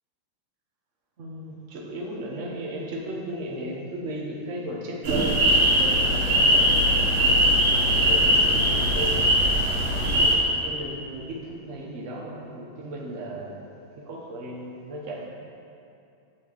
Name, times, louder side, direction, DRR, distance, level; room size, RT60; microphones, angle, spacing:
voice 1, 1.2-7.5 7.8-9.3 10.0-13.8 14.1-15.3, right 1 dB, 45° right, -2 dB, 1.2 m, -35 dB
sound 1, 5.0-10.3, equal, 85° right, 2.5 m, -20 dB
7.7 x 5.3 x 6.8 m, 2.6 s
omnidirectional pair, 2.3 m